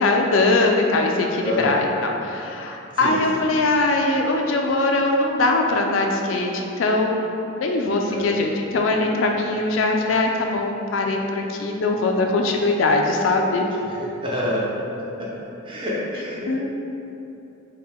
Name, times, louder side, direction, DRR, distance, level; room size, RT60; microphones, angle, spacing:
voice 1, 0.0-13.7 16.5-16.7, left 2 dB, 75° left, 2 dB, 0.4 m, -21 dB
voice 2, 1.4-1.8 3.0-3.2 8.1-8.3 13.9-14.7 15.2-15.3 15.6-16.7, left 1 dB, 25° right, -6 dB, 0.6 m, -27 dB
4.3 x 2.2 x 3.5 m, 2.9 s
head